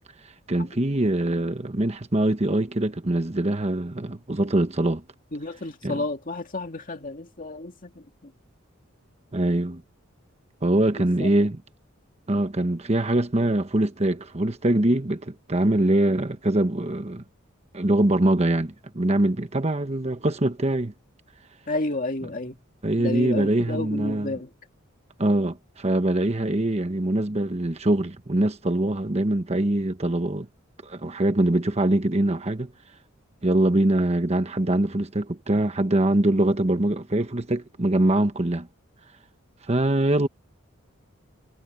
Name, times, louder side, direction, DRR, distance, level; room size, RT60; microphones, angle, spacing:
voice 1, 0.5-5.0 5.8-6.0 9.3-9.8 10.6-11.6 12.3-17.2 17.7-20.9 22.8-24.3 25.2-30.5 30.8-32.7 33.4-38.7 39.7-40.3, right 1 dB, 30° right, 1.1 m, -23 dB
voice 2, 5.3-8.3 10.9-11.3 21.7-22.6 22.9-24.5, left 2 dB, 40° left, 2.5 m, -31 dB
head